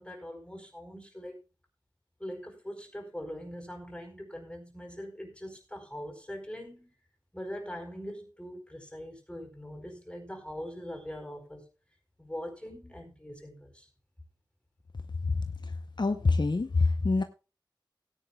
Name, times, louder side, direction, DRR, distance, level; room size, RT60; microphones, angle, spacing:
voice 1, 0.0-1.4 2.2-6.9 7.3-11.6 12.2-13.9, equal, 10° left, 4.5 m, -42 dB
voice 2, 16.0-17.2, left 3 dB, 60° left, 0.8 m, -25 dB
17.5 x 10.0 x 2.3 m
wide cardioid pair, 55°, 9 cm